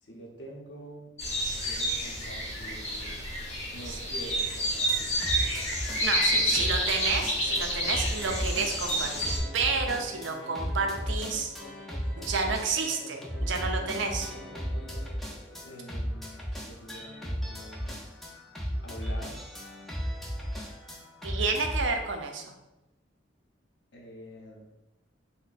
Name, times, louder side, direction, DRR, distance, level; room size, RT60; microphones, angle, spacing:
voice 1, 0.0-1.1 1.6-3.2 3.7-5.1 6.3-6.7 15.6-17.9 18.8-19.4 23.9-24.7, equal, 65° left, -1 dB, 0.7 m, -46 dB
sound 1, 1.2-9.4, equal, 35° left, 0.8 m, -29 dB
sound 2, 4.7-21.9, equal, ahead, 0.5 m, -35 dB
voice 2, 6.0-11.5 12.2-14.3 21.2-22.5, right 4 dB, 75° right, 4 dB, 0.5 m, -30 dB
sound 3, 7.3-15.7, equal, 45° right, 0.9 m, -48 dB
3.3 x 2.1 x 3.9 m, 0.95 s
head